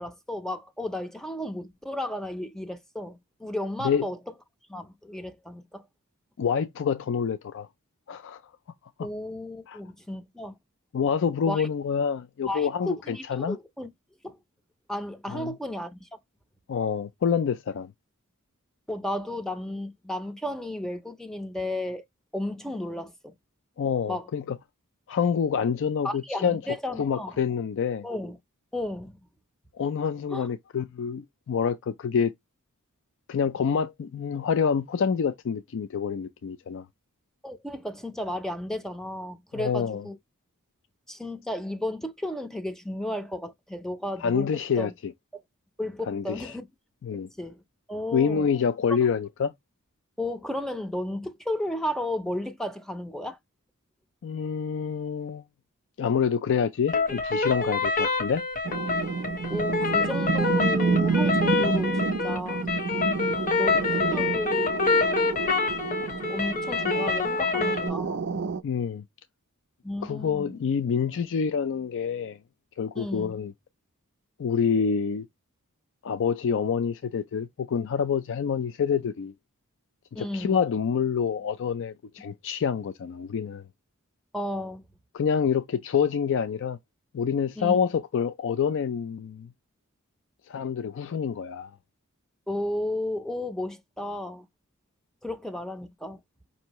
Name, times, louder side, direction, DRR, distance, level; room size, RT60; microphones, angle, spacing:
voice 1, 0.0-4.2 4.7-5.8 9.0-10.6 11.5-11.7 12.5-13.9 14.2-14.4 14.9-16.2 18.9-22.0 22.3-23.3 24.1-24.3 26.0-27.4 28.0-28.4 28.7-29.2 30.3-30.5 37.4-40.2 41.1-44.9 45.8-46.7 47.3-47.6 47.9-48.5 50.2-53.4 59.2-62.7 63.3-64.7 66.3-68.2 69.8-70.6 72.9-73.4 80.1-80.6 84.3-84.8 87.6-87.8 92.5-94.5 95.2-96.2, left 1 dB, ahead, 0.5 m, -33 dB
voice 2, 6.4-7.7 8.1-8.4 9.0-9.1 9.7-9.8 10.9-13.6 15.3-15.5 16.7-17.9 23.8-24.6 25.1-26.6 27.0-28.1 29.7-32.3 33.3-36.9 39.5-40.1 44.2-45.1 46.1-46.5 47.0-47.3 48.1-49.5 54.2-55.4 56.0-58.4 68.6-69.0 70.0-72.4 72.8-73.5 74.4-75.3 76.0-79.3 80.1-83.6 85.1-86.8 87.1-89.5 90.5-91.7, left 6 dB, 60° left, 0.4 m, -27 dB
sound 1, 56.9-67.9, left 3 dB, 40° left, 0.9 m, -26 dB
sound 2, 58.7-68.6, right 4 dB, 55° right, 0.4 m, -29 dB
5.4 x 2.7 x 2.9 m
head